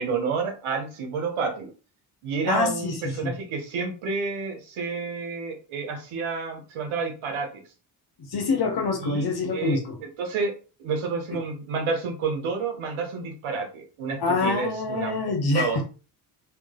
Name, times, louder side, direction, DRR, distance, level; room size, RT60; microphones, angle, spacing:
voice 1, 0.0-1.7 2.2-7.6 9.0-10.5 10.8-15.8, right 4 dB, 75° right, 4 dB, 1.4 m, -30 dB
voice 2, 2.5-3.3 8.2-10.0 11.3-11.4 14.2-15.8, left 3 dB, 50° left, 4 dB, 1.6 m, -26 dB
3.4 x 3.2 x 3.8 m, 0.35 s
supercardioid pair, 60°, 49 cm